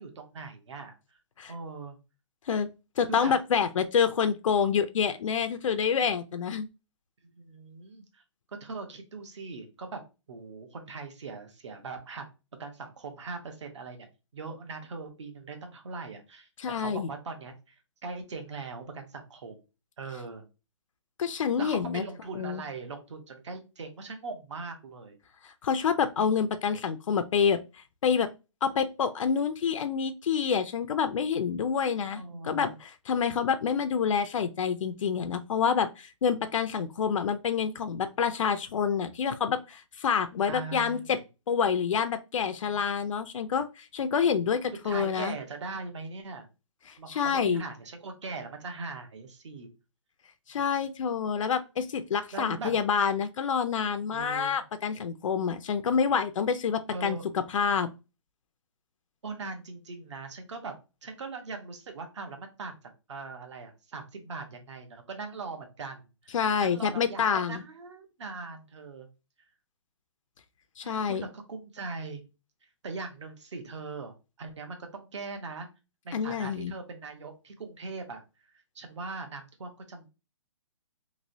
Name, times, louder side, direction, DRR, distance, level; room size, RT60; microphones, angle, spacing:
voice 1, 0.0-1.2 1.5-2.0 3.0-3.3 7.2-8.2 8.5-10.0 10.3-12.3 12.6-14.1 14.3-17.7 18.0-19.6 20.0-20.4 21.6-25.2 32.1-32.8 40.5-41.2 42.7-43.0 44.8-46.5 47.0-49.7 50.5-50.6 52.3-52.7 54.1-54.6 56.9-57.2 59.2-62.8 63.1-69.1 70.8-72.2 72.6-75.7 76.0-78.2 78.7-80.1, right 4 dB, 65° right, 5 dB, 0.9 m, -40 dB
voice 2, 3.0-6.7 16.6-17.1 21.2-22.0 22.4-22.6 25.4-28.3 28.6-41.2 41.5-45.3 46.9-47.6 50.5-57.9 66.3-67.6 70.8-71.2 76.1-76.7, left 7 dB, 75° left, 10 dB, 0.4 m, -27 dB
3.0 x 2.9 x 2.6 m, 0.29 s
hypercardioid pair, 175°, 17 cm